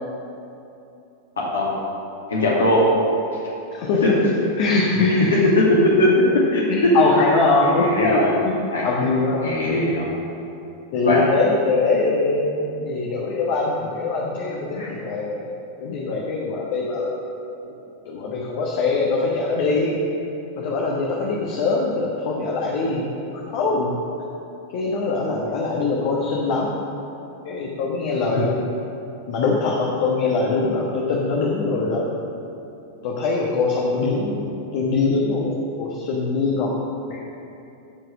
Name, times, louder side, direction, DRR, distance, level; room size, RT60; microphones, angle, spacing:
voice 1, 1.4-1.7 2.3-2.9 4.0-4.1 5.6-6.1 6.5-6.9 7.6-8.3 8.7-8.9 9.4-10.1 11.1-11.2 14.8-14.9, left 1 dB, 70° left, -5 dB, 2.4 m, -19 dB
voice 2, 3.7-5.3 6.7-8.5 8.8-9.5 10.9-15.5 15.8-17.2 17.6-17.7 18.0-20.0 20.6-23.9 24.7-26.7 27.4-28.6 29.3-32.1 33.0-34.5 34.7-36.7 37.1-37.2, left 3 dB, 50° left, -3 dB, 1.3 m, -22 dB
14.0 x 4.8 x 6.3 m, 2.8 s
figure-of-eight pair, 90°, 0 cm